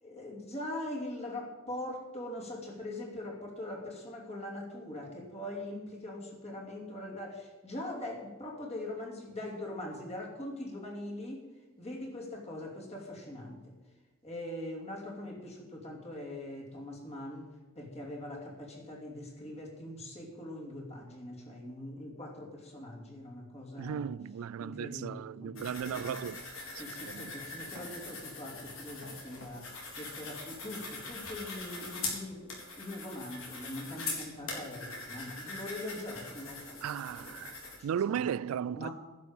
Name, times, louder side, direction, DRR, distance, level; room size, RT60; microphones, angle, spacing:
voice 1, 0.0-11.5 11.8-13.7 14.2-24.1 24.6-26.2 26.7-36.8 37.1-37.4 37.8-38.3 38.8-38.9, left 1 dB, 30° left, 2.7 m, -42 dB
voice 2, 23.8-26.4 26.7-27.3 36.8-38.9, right 8 dB, 90° right, 0.3 m, -36 dB
sound 1, 25.6-37.8, left 3 dB, 75° left, 3.8 m, -42 dB
11.0 x 6.6 x 8.7 m
head